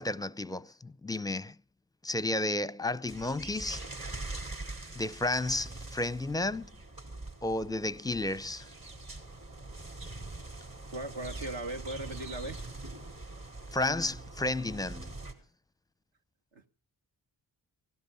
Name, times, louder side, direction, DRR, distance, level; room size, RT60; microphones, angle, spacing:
voice 1, 0.0-1.6 2.0-3.8 4.9-6.7 7.4-8.7 13.7-15.1, left 2 dB, 10° left, 0.6 m, -32 dB
sound 1, 3.1-15.3, right 2 dB, 45° right, 4.8 m, -43 dB
voice 2, 10.9-12.7 16.5-16.7, right 2 dB, 65° right, 1.7 m, -38 dB
17.0 x 12.0 x 5.6 m
cardioid pair, 40°, 47 cm